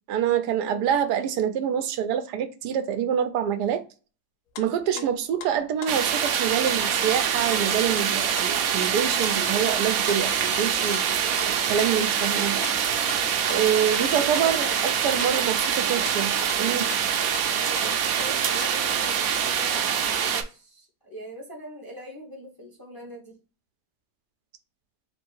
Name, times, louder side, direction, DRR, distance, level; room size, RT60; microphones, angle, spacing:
voice 1, 0.1-3.8 4.6-12.6 13.5-14.7 15.0-16.9, right 9 dB, 90° right, 1.2 m, -26 dB
sound 1, 4.5-7.7 8.0-8.1 8.4-12.4 12.6-12.8 13.1-13.2 13.5-14.1 14.3-17.5 17.8-18.8, left 9 dB, 70° left, 1.0 m, -41 dB
sound 2, 5.9-20.4, right 8 dB, 70° right, 1.0 m, -25 dB
voice 2, 13.9-14.8 17.7-23.4, equal, 20° left, 0.7 m, -41 dB
3.4 x 2.6 x 4.4 m
omnidirectional pair, 1.7 m